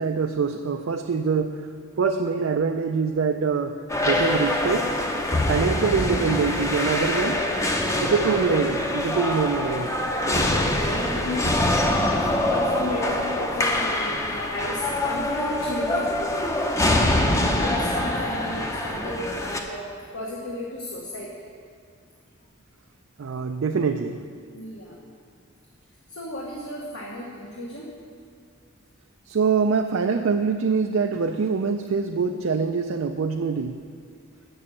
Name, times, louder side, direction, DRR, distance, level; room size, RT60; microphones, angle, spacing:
voice 1, 0.0-1.6 2.0-4.9 5.5-7.4 8.0-10.0 23.2-24.2 29.3-33.8, right 5 dB, 70° right, 5 dB, 0.4 m, -24 dB
sound 1, 3.9-19.6, left 1 dB, 15° left, 0.6 m, -24 dB
voice 2, 7.8-8.2 10.2-12.0 12.3-16.2 16.9-19.9 20.1-21.4 24.5-25.0 26.1-27.8, left 1 dB, 65° left, -3 dB, 1.2 m, -34 dB
7.6 x 6.9 x 7.1 m, 2.3 s
head